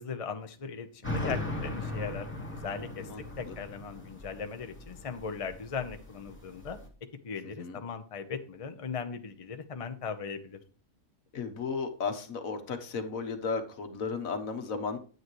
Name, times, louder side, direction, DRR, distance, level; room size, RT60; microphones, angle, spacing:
voice 1, 0.0-2.3 2.6-3.1 3.4-6.8 7.2-10.6, left 6 dB, 30° left, 8 dB, 0.8 m, -38 dB
sound 1, 1.0-6.9, left 2 dB, 10° left, 2.5 m, -38 dB
voice 2, 3.0-3.6 7.6-7.8 11.3-15.0, left 5 dB, 75° left, 7 dB, 1.6 m, -34 dB
9.3 x 9.3 x 3.1 m, 0.38 s
omnidirectional pair, 1.5 m